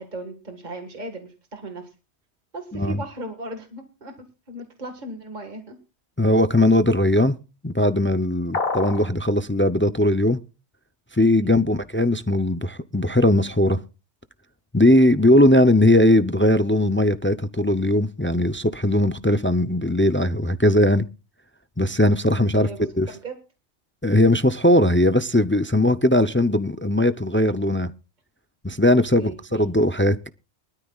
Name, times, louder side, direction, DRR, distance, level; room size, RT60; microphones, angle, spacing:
voice 1, 0.0-1.9 2.5-4.1 4.5-5.8 11.4-11.6 22.5-23.4 29.2-29.9, right 2 dB, 40° right, 1.9 m, -37 dB
voice 2, 6.2-7.4 7.6-10.4 11.1-13.8 14.7-21.1 21.8-22.7 23.0-23.1 24.0-27.9 28.6-30.3, left 1 dB, 15° left, 0.4 m, -19 dB
sound 1, 8.5-9.1, left 4 dB, 60° left, 1.4 m, -26 dB
23.0 x 13.0 x 2.4 m
omnidirectional pair, 1.1 m